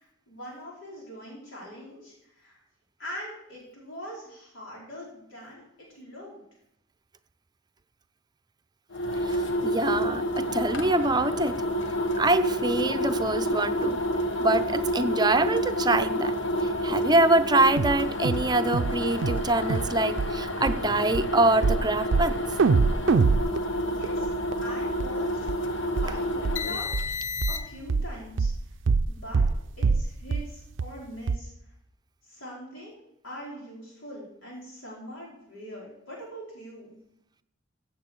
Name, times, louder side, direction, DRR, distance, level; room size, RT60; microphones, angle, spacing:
voice 1, 0.0-2.6 3.0-5.6 5.9-6.4 23.9-24.3 24.6-25.7 26.0-27.2 27.5-28.5 29.1-29.4 29.8-31.5 32.2-32.9 33.2-36.9, equal, 85° left, 4.7 m, -42 dB
sound 1, 8.9-27.9, equal, 70° left, 1.2 m, -29 dB
voice 2, 9.2-11.6 12.2-14.0 14.4-16.3 16.8-22.4, right 2 dB, 20° right, 0.6 m, -25 dB
sound 2, 17.8-18.0 18.3-18.5 18.7-19.0 19.2-19.5 19.7-19.9 20.2-20.3 20.7-20.8 21.1-21.3 21.6-21.8 22.1-22.3 22.6-24.6 25.0-25.1 25.5-25.6 26.0-26.1 26.5-26.6 26.9-27.1 27.4-27.6 27.9-28.1 28.4-28.6 28.9-29.1 29.3-29.6 29.8-30.1 30.3-30.5 30.8-30.9 31.3-31.4, right 4 dB, 65° right, 0.4 m, -24 dB
15.5 x 7.5 x 6.3 m
head